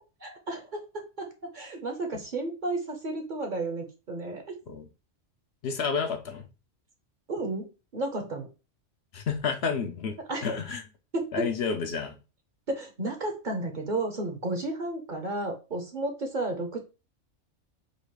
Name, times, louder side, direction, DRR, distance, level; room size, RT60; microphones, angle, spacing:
voice 1, 0.2-0.8 1.2-1.3 1.5-4.4 7.3-7.7 7.9-8.5 10.3-10.5 11.1-11.3 12.7-16.8, right 2 dB, 45° right, 0.9 m, -32 dB
voice 2, 5.6-6.5 9.1-10.8 11.3-12.1, left 5 dB, 65° left, 0.8 m, -30 dB
4.0 x 2.4 x 4.7 m
omnidirectional pair, 1.2 m